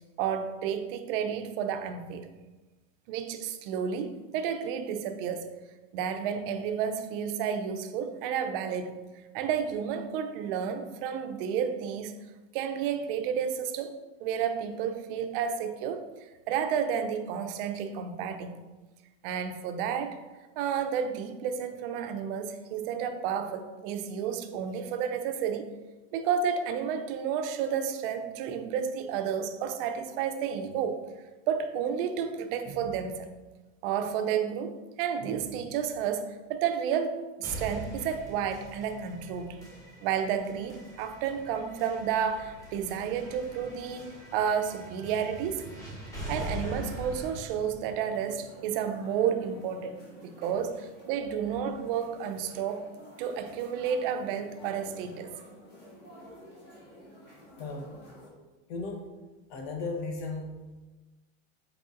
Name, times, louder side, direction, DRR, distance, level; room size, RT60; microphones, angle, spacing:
voice 1, 0.2-2.3 3.1-5.5 5.9-9.0 9.3-12.1 12.5-18.6 19.2-20.2 20.6-25.7 26.1-31.0 31.5-33.3 33.8-39.6 40.0-45.7 46.3-50.0 50.2-52.9 53.2-55.3, right 7 dB, 55° right, 0.5 m, -31 dB
sound 1, 37.4-49.4, equal, 10° left, 0.9 m, -43 dB
sound 2, 47.9-58.3, left 1 dB, 30° left, 1.5 m, -51 dB
voice 2, 57.6-57.9 58.7-59.1 59.5-60.5, left 3 dB, 65° left, 1.0 m, -35 dB
4.7 x 3.8 x 2.5 m
supercardioid pair, 135°, 33 cm